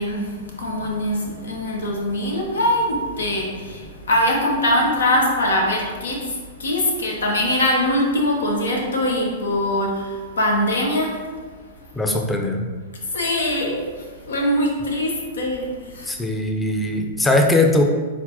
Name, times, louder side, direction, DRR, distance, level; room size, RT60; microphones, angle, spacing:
voice 1, 0.0-11.3 13.0-16.1, left 1 dB, 85° left, 0 dB, 0.9 m, -22 dB
voice 2, 12.0-12.7 16.0-17.8, left 2 dB, 10° left, 2 dB, 0.5 m, -20 dB
4.3 x 3.9 x 2.9 m, 1.5 s
hypercardioid pair, 120°, 0 cm